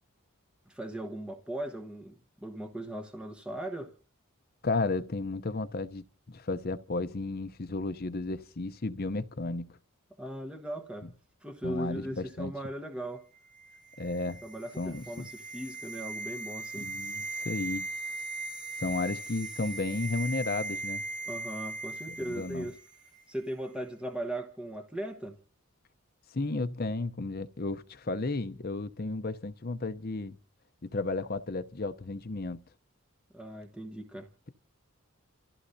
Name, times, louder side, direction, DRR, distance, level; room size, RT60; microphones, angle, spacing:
voice 1, 0.7-3.9 10.2-11.1 11.4-13.3 14.4-16.9 21.3-22.8 23.3-25.4 33.3-34.3, right 1 dB, 5° right, 1.1 m, -38 dB
voice 2, 4.6-9.7 11.6-12.5 14.0-14.4 14.8-15.3 16.8-17.9 18.8-21.0 22.1-22.7 26.3-30.4 30.8-32.6, left 3 dB, 40° left, 0.7 m, -33 dB
sound 1, 13.5-22.8 23.0-23.2, right 3 dB, 55° right, 2.8 m, -39 dB
30.0 x 14.5 x 2.7 m
head